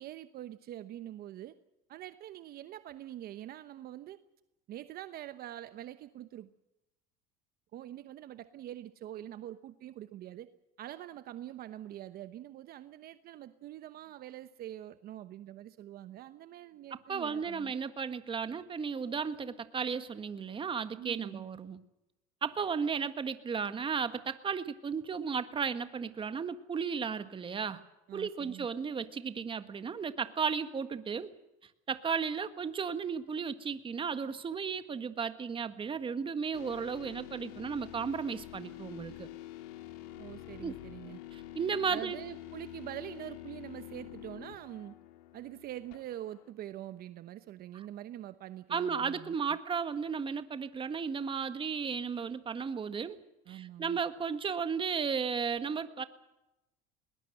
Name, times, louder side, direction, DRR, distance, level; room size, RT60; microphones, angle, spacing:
voice 1, 0.0-1.5 1.9-4.2 4.7-6.5 7.7-10.5 10.8-17.7 21.0-21.5 28.1-28.7 40.2-41.2 41.9-44.9 45.3-49.6 53.5-54.0, right 12 dB, 50° right, 11 dB, 1.0 m, -45 dB
voice 2, 16.9-21.8 22.4-27.8 28.1-31.3 31.9-39.3 40.6-40.7 41.3-42.2 47.7-47.8 48.7-53.2 53.5-56.0, right 6 dB, 25° right, 11 dB, 1.6 m, -34 dB
sound 1, 36.5-46.5, left 13 dB, 85° left, 2.4 m, -47 dB
21.0 x 20.0 x 7.8 m, 0.94 s
supercardioid pair, 105°, 19 cm